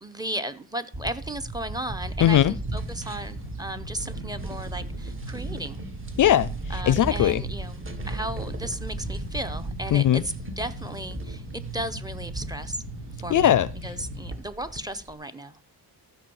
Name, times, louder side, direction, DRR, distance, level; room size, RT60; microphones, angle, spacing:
voice 1, 0.0-5.8 6.7-12.8 13.2-13.5 13.8-15.6, right 1 dB, 10° right, 0.9 m, -35 dB
sound 1, 0.9-15.1, right 2 dB, 30° right, 2.0 m, -37 dB
voice 2, 2.2-2.5 6.2-7.4 9.9-10.2 13.3-13.7, left 11 dB, 55° left, 0.5 m, -20 dB
rumble low water gushing movement, 2.4-14.4, right 2 dB, 85° right, 3.5 m, -38 dB
13.5 x 5.3 x 7.2 m
cardioid pair, 125°, 39 cm